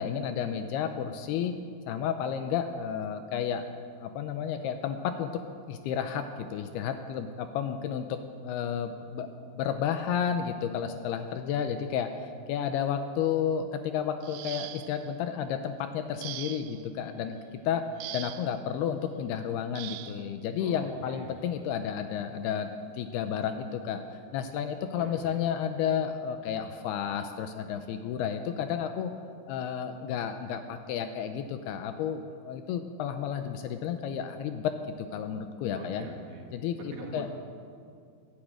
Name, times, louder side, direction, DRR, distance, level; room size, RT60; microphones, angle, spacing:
voice 1, 0.0-1.5 1.9-3.6 4.0-5.4 5.7-6.2 6.5-9.3 9.5-12.1 12.5-17.4 17.7-17.8 18.1-22.7 22.9-29.1 29.5-36.1 36.5-37.3, left 8 dB, 80° left, 8 dB, 2.5 m, -32 dB
sound 1, 14.2-15.1 16.2-16.9 18.0-18.6 19.8-20.2 21.4-21.6 22.1-22.3, right 15 dB, 85° right, 2.7 m, -41 dB
voice 2, 20.6-21.3 25.0-25.4 35.7-36.4 36.8-37.3, right 3 dB, 60° right, -1 dB, 3.3 m, -43 dB
13.5 x 11.5 x 8.9 m, 2.3 s
omnidirectional pair, 4.9 m